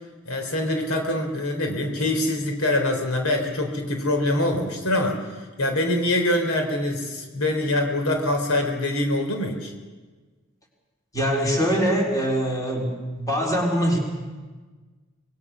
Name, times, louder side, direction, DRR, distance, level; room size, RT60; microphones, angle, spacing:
voice 1, 0.2-9.7, left 1 dB, 70° left, 4 dB, 3.5 m, -24 dB
voice 2, 11.1-12.9 13.2-14.0, equal, 15° left, -1 dB, 4.0 m, -23 dB
25.5 x 20.5 x 6.2 m, 1.3 s
head